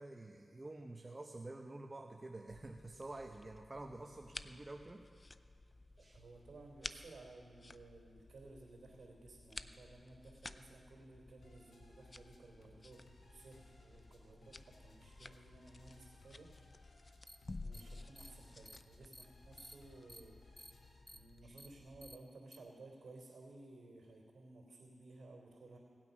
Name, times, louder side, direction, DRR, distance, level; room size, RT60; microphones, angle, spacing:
voice 1, 0.0-5.1 6.0-6.2 21.4-21.6, right 2 dB, 35° right, 4 dB, 0.8 m, -49 dB
sound 1, 2.5-22.2, left 2 dB, 40° left, 0.5 m, -54 dB
voice 2, 6.0-13.0 13.3-16.8 17.6-20.5 21.1-25.8, right 2 dB, 75° right, -4 dB, 3.0 m, -57 dB
sound 2, 11.4-21.0, left 2 dB, 85° left, 1.6 m, -65 dB
sound 3, 17.3-17.4 17.7-17.8 18.2-18.3 18.7-18.8 19.1-19.2 19.6-19.7 20.1-20.2 20.6-20.7 21.1-21.2 21.6-21.7 22.0-22.1 22.5-22.6, equal, 10° left, 1.0 m, -54 dB
18.0 x 8.9 x 5.4 m, 2.3 s
cardioid pair, 50°, 0 cm